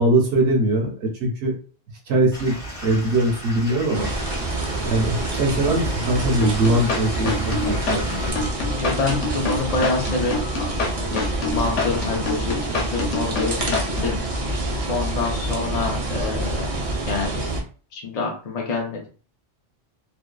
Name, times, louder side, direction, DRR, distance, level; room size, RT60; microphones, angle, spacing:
voice 1, 0.0-1.5 2.1-2.6 2.8-4.1 4.8-8.0, right 1 dB, 70° right, 0 dB, 1.0 m, -21 dB
Stream / Liquid, 2.3-8.3, equal, 30° left, 0.9 m, -36 dB
sound 1, 3.9-17.6, right 2 dB, 45° right, 0.5 m, -27 dB
sound 2, 6.4-14.2, left 3 dB, 85° left, 1.0 m, -27 dB
voice 2, 8.7-14.2 14.9-16.7 17.1-17.5 17.9-19.1, left 3 dB, 50° left, 0 dB, 0.5 m, -27 dB
2.6 x 2.2 x 2.2 m, 0.38 s
omnidirectional pair, 1.2 m